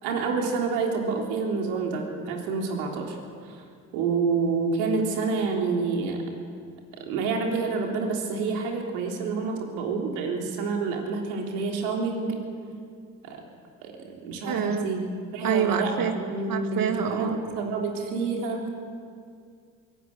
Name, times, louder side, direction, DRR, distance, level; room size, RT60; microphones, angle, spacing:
voice 1, 0.0-3.2 3.5-3.6 3.9-6.2 7.0-12.4 13.2-13.4 13.8-15.0 15.3-18.6, right 4 dB, 90° right, 1 dB, 3.7 m, -28 dB
voice 2, 14.5-14.9 15.4-16.2 16.5-17.4, right 8 dB, 60° right, 5 dB, 2.8 m, -27 dB
22.0 x 18.5 x 9.1 m, 2.2 s
supercardioid pair, 70°, 38 cm